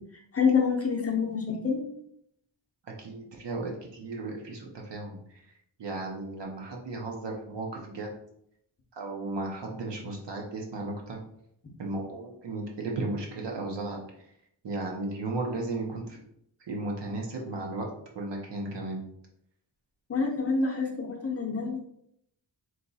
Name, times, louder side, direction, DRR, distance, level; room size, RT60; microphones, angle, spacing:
voice 1, 0.3-1.8 20.1-21.8, left 5 dB, 35° left, 1 dB, 0.7 m, -27 dB
voice 2, 3.0-5.4 5.8-8.1 8.9-11.2 11.8-14.0 14.6-16.2 16.7-17.9 18.1-19.1, right 2 dB, 70° right, 0 dB, 1.0 m, -35 dB
3.1 x 2.9 x 4.0 m, 0.72 s
wide cardioid pair, 155°, 43 cm